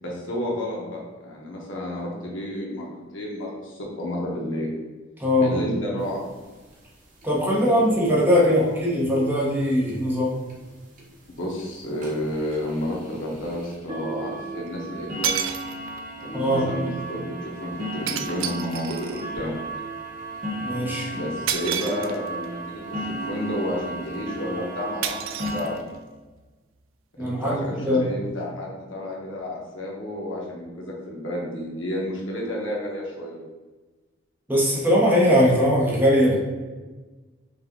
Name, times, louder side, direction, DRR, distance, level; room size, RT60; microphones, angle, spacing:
voice 1, 0.0-4.7 5.3-6.2 8.2-8.8 11.3-15.6 16.2-19.6 21.1-25.7 27.2-33.4, left 1 dB, 80° left, -3 dB, 1.2 m, -31 dB
voice 2, 5.2-5.5 7.2-10.3 16.3-16.7 20.6-21.1 27.2-28.1 34.5-36.4, equal, 10° right, -5 dB, 1.0 m, -20 dB
sound 1, 6.0-6.1 6.4-6.5 6.7-6.9 7.2-7.6 8.3-8.4 8.9-9.0 9.4-9.5 9.9-10.0 10.5-10.6 11.0-11.2 11.6-11.7 12.0-25.8, right 1 dB, 40° right, 0.9 m, -35 dB
sound 2, 12.5-12.6 14.7-14.8 15.2-16.1 18.1-19.3 21.5-22.5 25.0-26.1, right 9 dB, 80° right, 0.4 m, -30 dB
5.3 x 2.5 x 3.8 m, 1.3 s
head